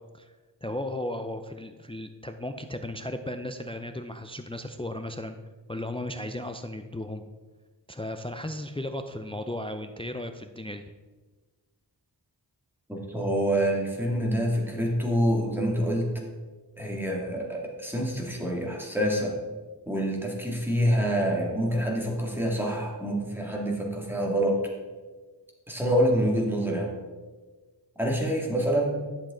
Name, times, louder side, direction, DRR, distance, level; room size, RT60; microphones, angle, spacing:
voice 1, 0.6-5.4 5.7-7.2 7.9-10.9, left 1 dB, 15° left, 7 dB, 0.4 m, -35 dB
voice 2, 12.9-16.1 16.8-19.4 19.9-24.6 25.7-27.0 28.0-29.0, equal, 5° right, -1 dB, 2.1 m, -26 dB
11.0 x 7.2 x 3.8 m, 1.3 s
wide cardioid pair, 60°, 44 cm